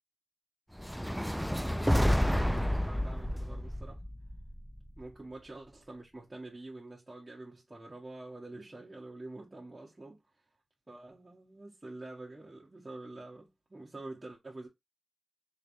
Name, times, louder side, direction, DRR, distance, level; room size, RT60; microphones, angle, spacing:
sound 1, 0.8-5.0, equal, ahead, 0.3 m, -30 dB
voice 1, 1.2-4.0 5.0-10.2 10.9-14.7, right 2 dB, 30° right, 1.2 m, -47 dB
3.9 x 3.2 x 2.6 m
wide cardioid pair, 85°, 0 cm